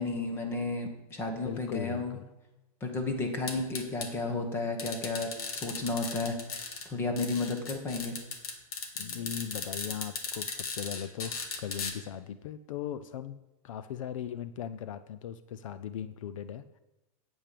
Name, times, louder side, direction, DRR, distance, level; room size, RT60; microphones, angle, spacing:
voice 1, 0.0-2.2 2.8-6.4 6.8-8.2, left 3 dB, 10° left, 5 dB, 1.2 m, -32 dB
voice 2, 1.4-2.2 9.0-13.4 13.6-16.8, left 9 dB, 60° left, 13 dB, 0.6 m, -38 dB
sound 1, 3.5-4.1 4.8-6.9 7.2-11.9, left 5 dB, 85° left, 2.2 m, -37 dB
9.0 x 8.8 x 6.8 m, 0.98 s
supercardioid pair, 180°, 19 cm